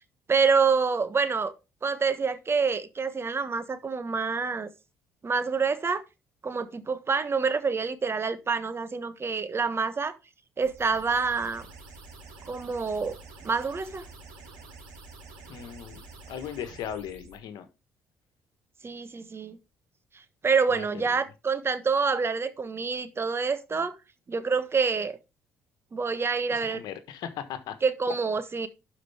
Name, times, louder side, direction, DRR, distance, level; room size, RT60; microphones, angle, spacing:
voice 1, 0.3-1.5 1.8-4.7 5.2-6.0 6.4-10.2 10.6-11.6 12.5-13.2 13.4-14.0 18.8-19.6 20.4-23.9 24.3-25.2 25.9-26.8 27.8-28.7, right 5 dB, 35° right, 1.3 m, -27 dB
sound 1, 10.6-17.4, right 3 dB, 85° right, 3.4 m, -48 dB
voice 2, 15.5-16.0 16.3-17.7 20.7-21.2 26.5-27.8, left 9 dB, 70° left, 1.3 m, -38 dB
11.5 x 5.2 x 3.5 m
hypercardioid pair, 55°, 7 cm